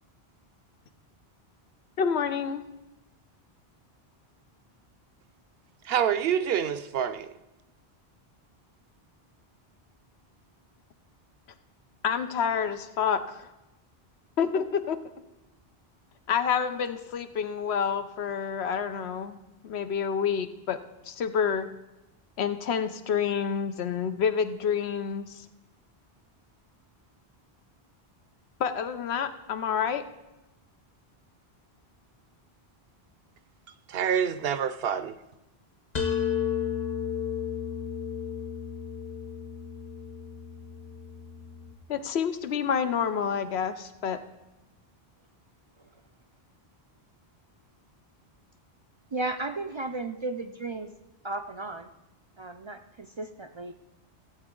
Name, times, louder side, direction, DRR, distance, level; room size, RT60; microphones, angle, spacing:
voice 1, 2.0-2.6 12.0-13.5 14.4-15.0 16.3-19.4 19.6-20.8 21.1-21.7 22.4-25.4 28.6-30.0 41.9-44.2, left 7 dB, 85° left, 1.0 m, -28 dB
voice 2, 5.8-7.3 33.9-35.2, right 8 dB, 70° right, 0.8 m, -27 dB
sound 1, 35.9-41.7, left 8 dB, 45° left, 1.1 m, -33 dB
voice 3, 49.1-50.9 51.2-51.9 52.4-53.7, right 2 dB, 45° right, 0.3 m, -34 dB
16.5 x 7.9 x 3.8 m
omnidirectional pair, 1.1 m